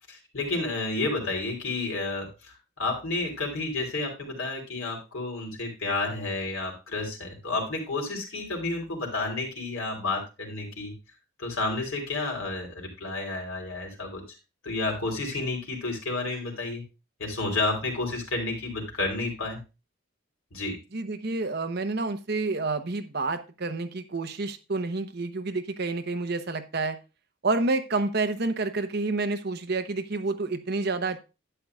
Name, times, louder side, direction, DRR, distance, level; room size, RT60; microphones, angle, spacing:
voice 1, 0.1-10.9 11.4-14.2 14.6-16.8 17.2-19.6 20.5-20.8, left 2 dB, 85° left, 1 dB, 3.7 m, -31 dB
voice 2, 20.9-26.9 27.4-31.2, right 3 dB, 55° right, 8 dB, 0.9 m, -29 dB
11.0 x 9.0 x 2.4 m, 0.28 s
head